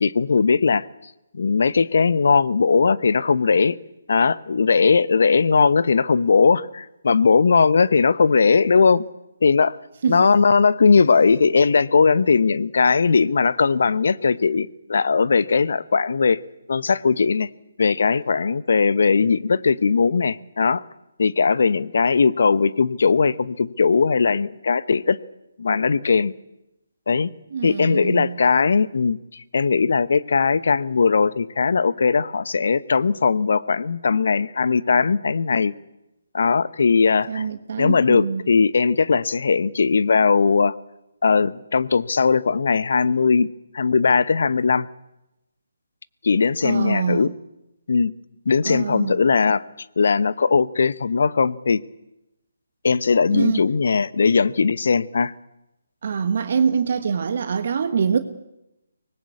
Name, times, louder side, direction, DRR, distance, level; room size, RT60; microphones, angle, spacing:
voice 1, 0.0-0.9 1.3-3.8 4.1-9.0 9.4-9.8 10.1-16.4 16.7-17.5 17.8-20.8 21.2-25.2 25.6-26.3 27.1-27.3 27.6-35.7 36.3-37.5 37.8-40.7 41.2-43.5 43.7-44.9 46.2-47.3 47.9-48.1 48.5-49.6 50.0-51.8 52.8-55.3, left 5 dB, 60° left, 17 dB, 0.9 m, -19 dB
voice 2, 27.5-28.4 37.3-38.4 46.6-47.3 48.6-49.2 53.3-53.7 56.0-58.2, right 6 dB, 50° right, 8 dB, 1.6 m, -24 dB
24.5 x 19.5 x 8.5 m, 0.93 s
figure-of-eight pair, 145°, 0 cm